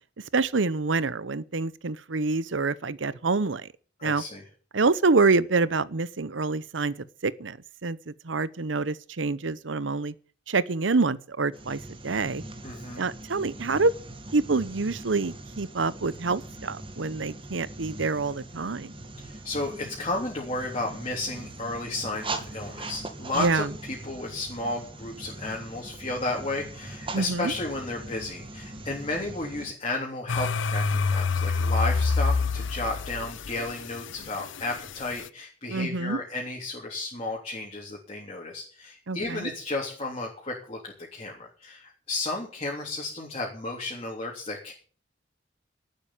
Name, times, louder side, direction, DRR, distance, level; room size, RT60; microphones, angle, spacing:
voice 1, 0.3-3.7 4.0-4.2 4.7-7.6 7.8-10.1 10.5-12.4 13.0-13.9 14.3-18.9 23.3-23.7 27.1-27.5 35.7-36.2 39.1-39.5, right 3 dB, 85° right, 0.8 m, -26 dB
voice 2, 4.0-4.4 12.6-13.0 19.2-44.7, left 2 dB, 30° left, 3.4 m, -33 dB
sound 1, 11.5-29.7, right 2 dB, 30° right, 2.1 m, -41 dB
sound 2, 30.3-35.2, left 4 dB, 80° left, 0.6 m, -27 dB
12.0 x 9.0 x 8.9 m
head